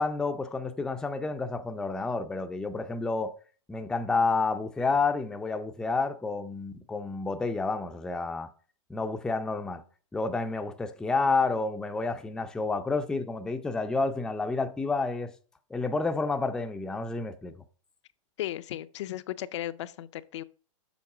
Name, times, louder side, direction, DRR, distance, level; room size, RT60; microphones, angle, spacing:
voice 1, 0.0-3.3 3.7-8.5 8.9-9.8 10.1-15.3 15.7-17.6, left 3 dB, 5° left, 0.4 m, -29 dB
voice 2, 18.4-20.4, left 13 dB, 60° left, 0.5 m, -35 dB
7.2 x 5.3 x 4.8 m
hypercardioid pair, 145°, 17 cm